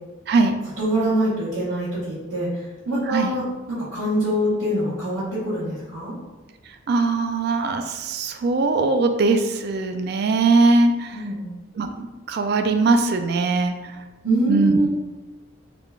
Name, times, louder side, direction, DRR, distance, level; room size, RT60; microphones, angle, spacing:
voice 1, 0.8-2.6 2.9-6.2 11.1-11.5 14.2-14.9, right 1 dB, 80° right, -12 dB, 1.2 m, -24 dB
voice 2, 6.9-11.2 11.8-13.7 14.5-14.8, right 3 dB, 55° right, 7 dB, 0.3 m, -20 dB
3.6 x 2.4 x 3.3 m, 1.2 s
head